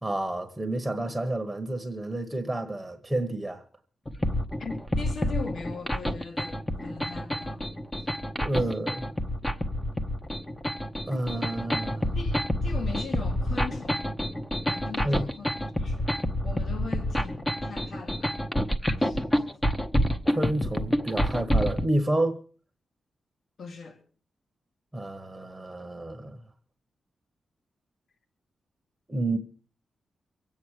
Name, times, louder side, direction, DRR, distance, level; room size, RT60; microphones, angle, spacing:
voice 1, 0.0-3.6 8.4-9.1 11.1-12.2 15.0-15.3 20.3-22.4 24.9-26.4 29.1-29.4, right 1 dB, 5° right, 1.2 m, -29 dB
sound 1, 4.1-21.9, equal, 10° left, 0.9 m, -28 dB
voice 2, 4.6-7.6 12.1-14.1 14.7-16.1 16.4-18.3 19.0-19.4 23.6-24.0, left 4 dB, 55° left, 1.9 m, -40 dB
24.0 x 8.9 x 4.8 m
wide cardioid pair, 160°, 0 cm